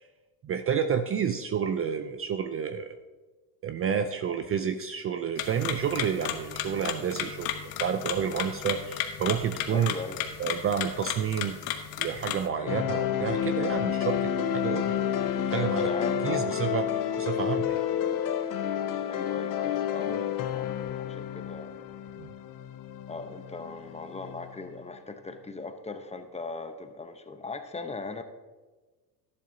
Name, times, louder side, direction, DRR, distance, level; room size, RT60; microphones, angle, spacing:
voice 1, 0.4-3.0 3.6-7.5 7.8-9.9 10.4-15.9 16.2-17.8 22.2-22.3, right 7 dB, 30° right, 9 dB, 0.5 m, -30 dB
sound 1, 5.4-12.5, left 10 dB, 70° left, 1.2 m, -34 dB
voice 2, 9.7-10.2 12.6-12.8 15.8-16.6 19.1-21.8 23.1-28.2, left 3 dB, 15° left, 7 dB, 0.8 m, -39 dB
sound 2, 12.7-24.8, left 9 dB, 45° left, 0.8 m, -30 dB
12.0 x 11.0 x 2.7 m, 1.3 s
supercardioid pair, 90°, 47 cm